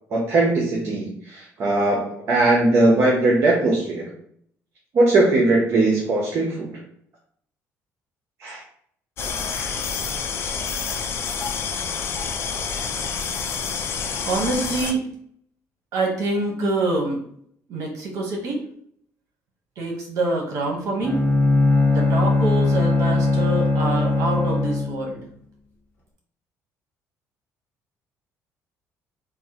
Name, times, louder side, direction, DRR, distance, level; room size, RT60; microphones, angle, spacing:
voice 1, 0.1-4.1 4.9-6.7 8.4-8.6 9.5-9.7, right 2 dB, 45° right, -3 dB, 0.7 m, -20 dB
sound 1, 9.2-14.9, left 6 dB, 45° left, 0.4 m, -28 dB
voice 2, 14.2-15.0 15.9-17.2 17.7-18.6 19.8-21.2 21.9-25.2, right 2 dB, 65° right, 1 dB, 0.9 m, -25 dB
Bowed string instrument, 21.0-25.1, left 3 dB, 25° left, 1.0 m, -20 dB
3.5 x 2.1 x 2.7 m, 0.64 s
cardioid pair, 140°, 6 cm